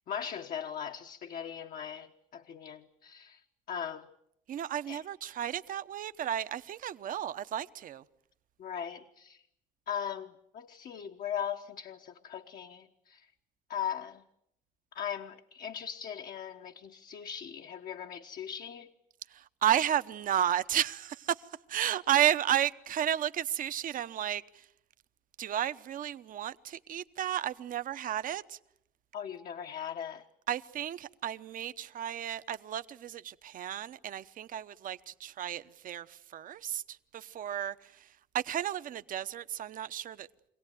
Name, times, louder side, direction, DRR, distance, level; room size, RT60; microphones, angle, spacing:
voice 1, 0.1-3.4 3.7-4.1 4.9-5.0 8.6-9.4 9.9-13.3 13.7-14.2 14.9-18.9 29.1-30.2, left 8 dB, 55° left, 1.2 m, -39 dB
voice 2, 4.5-8.0 19.3-24.7 25.4-28.6 30.5-40.3, right 10 dB, 55° right, 0.9 m, -33 dB
25.0 x 17.5 x 9.3 m
cardioid pair, 110°, 17 cm